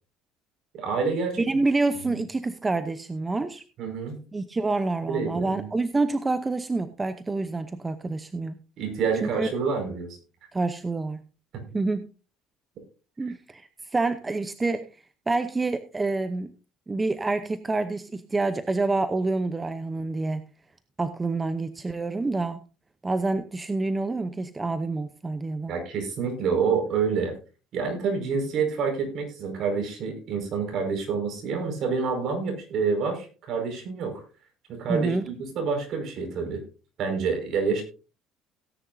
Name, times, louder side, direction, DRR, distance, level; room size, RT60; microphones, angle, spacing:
voice 1, 0.7-1.4 1.9-2.2 3.8-4.2 5.0-5.7 8.8-10.2 25.7-27.3 27.7-34.2 34.7-36.6 37.0-37.8, right 5 dB, 55° right, 4 dB, 5.3 m, -28 dB
voice 2, 1.4-3.6 4.3-8.5 9.2-9.5 10.5-11.2 11.7-12.1 13.2-14.9 15.3-16.5 16.9-20.4 21.0-22.6 23.0-25.7 34.9-35.2, right 3 dB, 15° right, 10 dB, 0.7 m, -27 dB
17.5 x 9.8 x 2.7 m, 0.35 s
cardioid pair, 120°, 0 cm